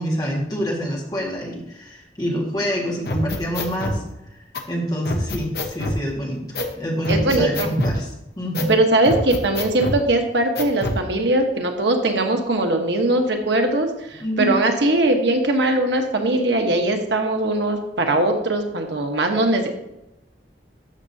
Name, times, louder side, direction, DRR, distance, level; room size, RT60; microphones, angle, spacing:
voice 1, 0.0-4.0 4.4-8.0 8.4-8.7 14.2-14.6, equal, 25° left, -2 dB, 1.8 m, -26 dB
sound 1, 3.1-4.0 4.5-4.6 5.1-6.0 6.6-6.7 7.0-8.0 8.5-8.7 9.1-10.0 10.6-11.0, left 1 dB, 60° left, 1.0 m, -26 dB
voice 2, 7.1-7.7 8.7-19.7, right 2 dB, 85° right, 3 dB, 1.2 m, -20 dB
13.0 x 6.4 x 2.8 m, 0.90 s
head